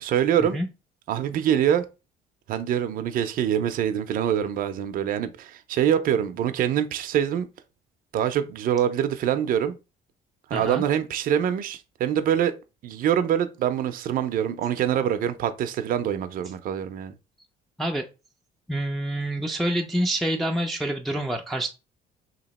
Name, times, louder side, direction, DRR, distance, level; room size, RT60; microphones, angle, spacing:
voice 1, 0.0-0.6 1.1-1.9 2.5-7.5 8.1-9.8 10.5-12.6 12.8-17.1, right 9 dB, 55° right, 0.5 m, -24 dB
voice 2, 10.5-10.8 17.8-18.1 18.7-21.7, right 1 dB, ahead, 0.4 m, -27 dB
2.9 x 2.8 x 4.0 m
cardioid pair, 110°, 17 cm